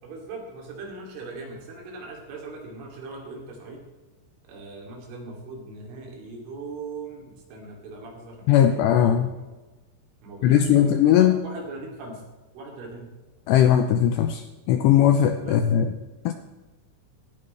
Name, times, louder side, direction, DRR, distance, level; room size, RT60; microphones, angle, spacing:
voice 1, 0.0-3.8 4.5-9.4 10.2-12.2 12.6-13.1 13.5-13.7 15.4-15.6, right 3 dB, 75° right, 0 dB, 5.5 m, -40 dB
voice 2, 8.5-9.3 10.4-11.4 13.5-15.9 16.3-16.4, left 10 dB, 80° left, 7 dB, 2.5 m, -19 dB
16.5 x 15.0 x 3.4 m, 1.2 s
omnidirectional pair, 5.6 m